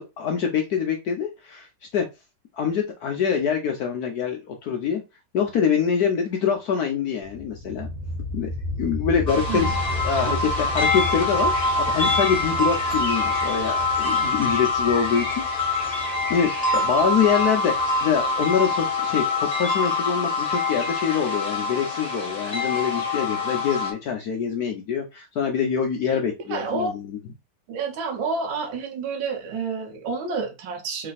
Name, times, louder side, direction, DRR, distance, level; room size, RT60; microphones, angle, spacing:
voice 1, 0.0-1.7 1.9-2.1 2.5-5.0 5.3-7.9 8.3-8.5 8.8-15.8 16.3-27.2, left 7 dB, 65° left, 1.0 m, -25 dB
sound 1, 7.2-18.8, left 1 dB, 40° right, 1.3 m, -34 dB
sound 2, 9.3-23.9, left 3 dB, 25° left, 1.1 m, -25 dB
voice 2, 26.5-26.9 27.7-31.1, right 4 dB, 85° right, 1.7 m, -29 dB
3.3 x 3.3 x 4.0 m
omnidirectional pair, 2.1 m